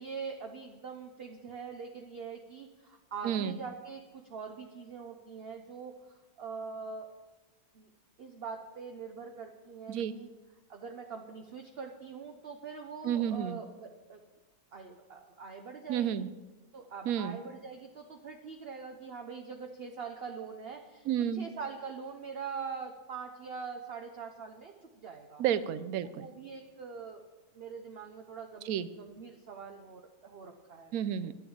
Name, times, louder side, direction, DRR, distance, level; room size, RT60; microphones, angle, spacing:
voice 1, 0.0-7.1 7.7-7.9 8.2-10.3 10.7-14.2 14.7-16.3 16.7-21.1 21.3-25.4 26.0-27.2 27.5-28.7 29.0-30.9, right 5 dB, 50° right, 4 dB, 0.9 m, -43 dB
voice 2, 3.2-3.6 9.9-10.2 13.0-13.6 15.9-16.3 17.1-17.4 21.1-21.4 25.4-26.3 28.7-28.9 30.9-31.3, right 9 dB, 75° right, 14 dB, 1.1 m, -31 dB
10.5 x 7.0 x 8.5 m, 1.2 s
omnidirectional pair, 1.6 m